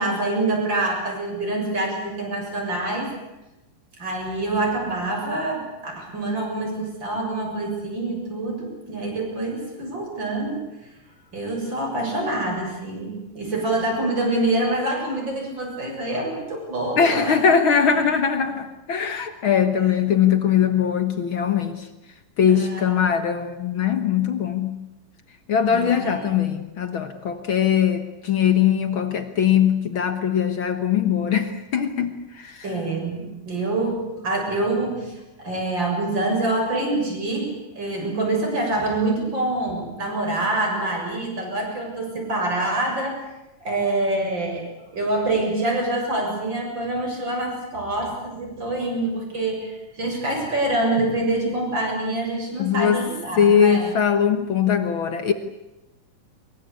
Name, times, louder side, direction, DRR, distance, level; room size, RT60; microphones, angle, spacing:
voice 1, 0.0-3.1 4.0-10.6 11.3-17.4 22.5-22.9 25.7-26.2 32.6-43.2 43.6-44.7 44.9-53.9, right 2 dB, 30° right, 1 dB, 7.6 m, -26 dB
voice 2, 17.0-21.9 22.4-24.8 25.5-32.6 52.6-53.0 53.4-55.3, left 8 dB, 65° left, 9 dB, 1.3 m, -21 dB
23.0 x 23.0 x 8.3 m, 0.98 s
omnidirectional pair, 4.1 m